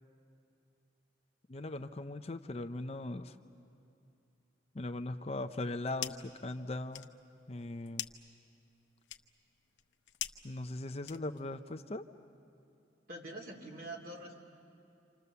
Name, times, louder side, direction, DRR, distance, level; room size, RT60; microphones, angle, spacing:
voice 1, 1.5-3.3 4.7-7.1 7.5-8.1 10.4-12.0, left 2 dB, 35° left, 7 dB, 0.6 m, -39 dB
sound 1, 5.5-6.4 6.7-11.6, left 12 dB, 90° left, 0.8 m, -45 dB
voice 2, 13.1-14.4, right 1 dB, 55° right, 0 dB, 3.2 m, -45 dB
28.0 x 27.0 x 6.9 m, 2.7 s
head